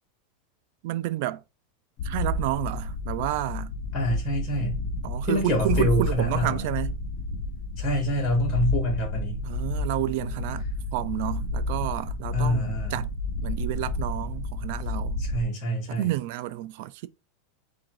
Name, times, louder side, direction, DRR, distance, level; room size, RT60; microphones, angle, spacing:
voice 1, 0.8-1.4 2.0-3.7 5.0-7.0 9.4-10.7 10.9-13.1 13.4-15.2 15.9-17.1, right 15 dB, 55° right, 0.4 m, -30 dB
sound 1, 2.0-15.4, left 2 dB, 50° left, 0.8 m, -31 dB
voice 2, 3.9-4.8 5.3-6.7 7.8-9.4 12.3-13.0 15.2-16.1, equal, 20° left, 1.4 m, -26 dB
3.6 x 2.6 x 4.7 m
supercardioid pair, 155°, 0 cm